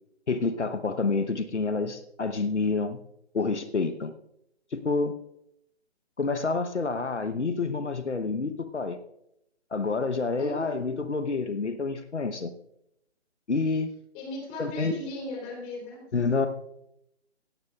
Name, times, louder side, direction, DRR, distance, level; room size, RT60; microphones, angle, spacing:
voice 1, 0.3-3.0 3.3-4.1 4.7-5.1 6.2-9.0 9.7-12.5 13.5-13.9 14.6-15.0 16.1-16.5, left 4 dB, 85° left, 9 dB, 1.0 m, -28 dB
voice 2, 10.4-10.8 14.1-16.0, left 1 dB, 20° left, -1 dB, 3.7 m, -36 dB
17.0 x 14.5 x 2.4 m, 0.79 s
figure-of-eight pair, 140°, 34 cm